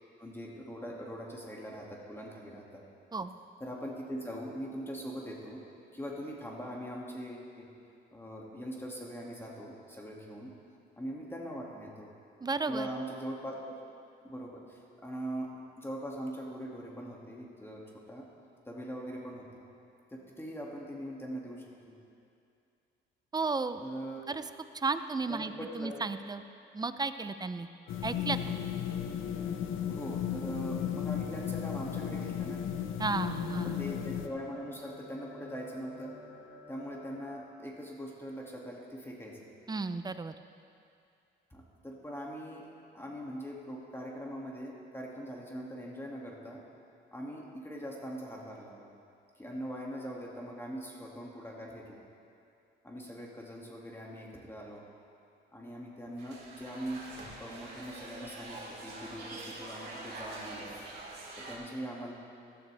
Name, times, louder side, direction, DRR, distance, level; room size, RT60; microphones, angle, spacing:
voice 1, 0.2-2.8 3.6-5.6 5.9-7.7 8.1-10.5 11.0-12.1 12.7-13.7 14.2-15.5 15.8-17.8 18.1-18.3 18.7-19.6 20.1-22.0 23.8-24.2 25.3-26.0 29.9-32.6 33.6-36.1 36.7-39.5 41.5-42.7 42.9-46.6 47.1-48.9 49.4-52.1 52.8-54.8 55.5-57.0 57.4-60.7 61.4-62.1, equal, 10° left, -2 dB, 2.3 m, -41 dB
voice 2, 12.4-12.9 23.3-23.8 24.3-24.4 24.7-26.4 26.7-27.7 28.0-28.4 33.0-33.8 39.7-40.3, right 4 dB, 20° right, 11 dB, 0.6 m, -33 dB
sound 1, 27.9-34.3, left 9 dB, 80° left, 0.8 m, -35 dB
sound 2, 27.9-37.3, left 2 dB, 50° left, 2.8 m, -52 dB
sound 3, 56.2-61.6, right 2 dB, 55° right, 3.5 m, -45 dB
16.5 x 12.5 x 3.5 m, 2.5 s
cardioid pair, 90°, 20 cm